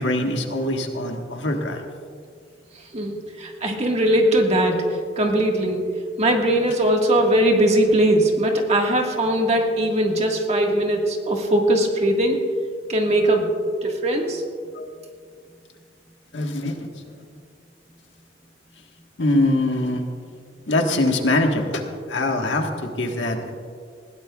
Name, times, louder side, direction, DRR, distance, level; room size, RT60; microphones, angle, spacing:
voice 1, 0.0-1.8 14.7-14.9 16.3-16.9 19.2-20.1 20.7-23.5, left 1 dB, 85° left, 3 dB, 1.5 m, -23 dB
voice 2, 2.9-4.8 5.2-5.8 6.2-12.4 12.9-13.5 13.8-14.4, right 1 dB, 35° right, 1 dB, 1.7 m, -20 dB
20.5 x 16.0 x 2.4 m, 2.2 s
head